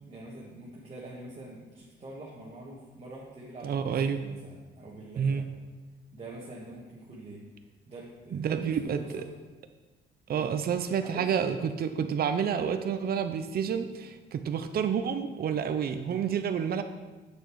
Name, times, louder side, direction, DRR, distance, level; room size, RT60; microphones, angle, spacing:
voice 1, 0.0-5.4 6.1-7.4 7.9-9.3 10.3-10.5 11.0-11.3, right 2 dB, 30° right, -6 dB, 1.7 m, -45 dB
voice 2, 3.6-4.2 5.2-5.5 8.3-9.2 10.3-16.8, right 7 dB, 50° right, 8 dB, 0.6 m, -29 dB
8.2 x 6.6 x 4.8 m, 1.2 s
cardioid pair, 90°, 20 cm